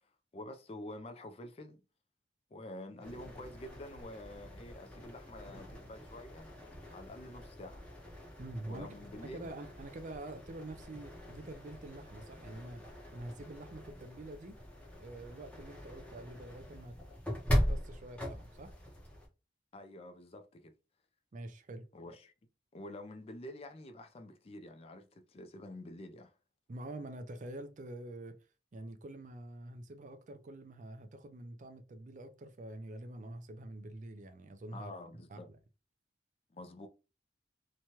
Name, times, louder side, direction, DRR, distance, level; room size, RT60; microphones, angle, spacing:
voice 1, 0.3-1.8 2.5-6.5 6.9-7.9 8.7-9.5 19.7-20.7 21.9-22.3 22.7-26.3 34.7-35.5 36.5-36.9, left 1 dB, 35° left, 0.4 m, -48 dB
Wind / Fire, 2.8-12.3, equal, 65° left, 1.1 m, -61 dB
sound 1, 3.0-19.3, equal, 5° left, 0.7 m, -40 dB
voice 2, 8.4-8.9 9.2-14.6 15.0-17.0 17.5-18.7 21.3-21.9 26.7-28.4 28.7-34.9 35.3-35.4, right 1 dB, 45° right, 0.4 m, -46 dB
3.0 x 2.2 x 2.8 m
head